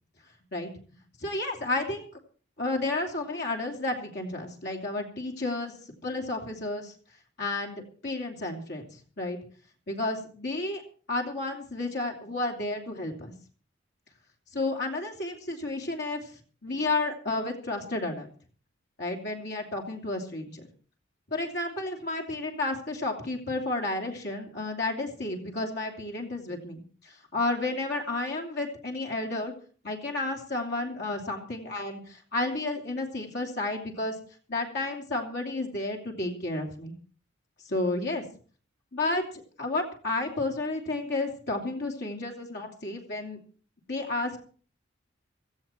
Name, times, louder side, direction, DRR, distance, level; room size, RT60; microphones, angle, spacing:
voice 1, 1.2-2.1 2.6-5.7 6.0-6.9 7.4-8.8 9.2-9.4 9.9-10.8 11.1-13.3 14.5-16.3 16.6-18.3 19.0-20.7 21.3-29.5 29.8-34.1 34.5-36.9 37.6-38.3 38.9-39.2 39.6-43.4 43.9-44.4, left 2 dB, 55° left, 2 dB, 3.0 m, -31 dB
17.0 x 15.0 x 4.4 m, 0.41 s
head